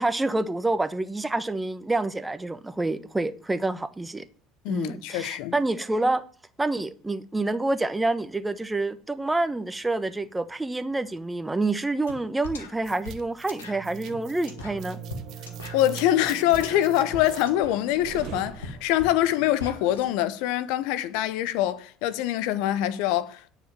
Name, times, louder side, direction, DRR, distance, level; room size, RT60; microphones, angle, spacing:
voice 1, 0.0-4.2 4.7-6.2 6.6-15.0, right 2 dB, 15° right, 1.1 m, -27 dB
voice 2, 4.6-5.5 15.7-23.5, left 13 dB, 70° left, 0.8 m, -24 dB
sound 1, 12.1-12.2 12.4-20.1, left 3 dB, 85° left, 1.6 m, -41 dB
sound 2, 12.8-19.2, right 9 dB, 60° right, 1.1 m, -41 dB
9.7 x 5.6 x 7.3 m
hypercardioid pair, 65°, 0 cm